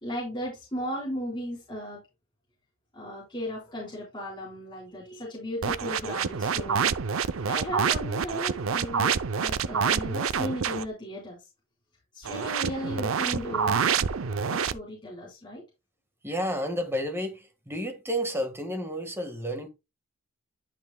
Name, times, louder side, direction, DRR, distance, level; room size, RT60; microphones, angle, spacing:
voice 1, 0.0-2.0 2.9-6.9 7.3-11.4 12.1-15.6, equal, 20° left, 4.2 m, -36 dB
sound 1, 5.6-10.9 12.2-14.7, right 6 dB, 70° right, 0.6 m, -27 dB
voice 2, 16.2-19.7, equal, 10° right, 1.6 m, -31 dB
12.0 x 5.9 x 2.3 m
head